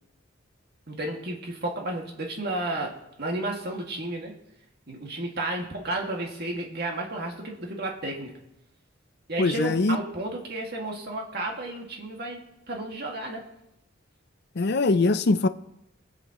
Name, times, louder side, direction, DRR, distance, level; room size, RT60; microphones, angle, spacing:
voice 1, 0.9-4.4 4.9-8.4 9.3-13.5, right 2 dB, 50° right, 2.2 m, -32 dB
voice 2, 9.4-10.0 14.6-15.5, left 3 dB, 55° left, 0.5 m, -22 dB
25.0 x 8.4 x 3.1 m
head